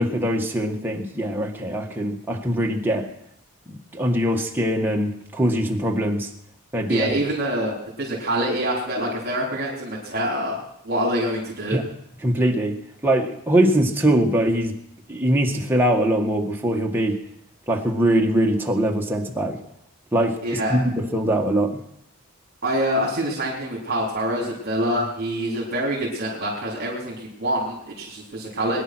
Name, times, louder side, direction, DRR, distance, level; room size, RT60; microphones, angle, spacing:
voice 1, 0.0-3.1 3.7-6.3 6.7-7.1 11.7-11.8 12.2-12.8 13.0-14.8 15.1-17.2 17.7-19.6 20.1-21.8, right 1 dB, 10° right, 0 dB, 1.6 m, -22 dB
voice 2, 6.9-10.6 10.8-11.8 20.4-20.8 22.6-28.8, right 1 dB, 45° right, -4 dB, 3.7 m, -25 dB
22.0 x 10.0 x 6.2 m, 0.77 s
head